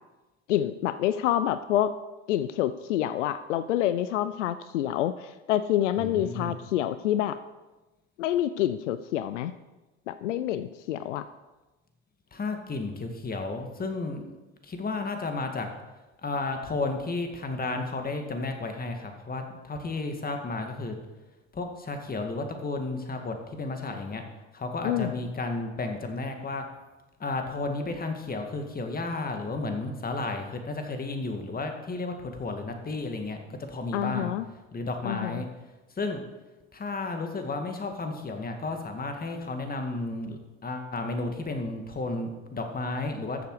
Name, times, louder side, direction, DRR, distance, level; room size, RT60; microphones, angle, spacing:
voice 1, 0.5-1.9 2.3-7.4 8.2-9.5 10.1-11.3 24.8-25.1 33.9-34.5 35.0-35.4, left 12 dB, 85° left, 13 dB, 0.6 m, -27 dB
voice 2, 6.0-6.5 12.3-14.2 14.6-15.7 16.2-20.9 21.5-24.2 24.5-26.7 27.2-34.3 34.7-35.5 36.0-36.2 36.7-43.5, left 3 dB, 25° left, 5 dB, 2.1 m, -32 dB
14.0 x 7.1 x 4.9 m, 1.1 s
hypercardioid pair, 80°, 35 cm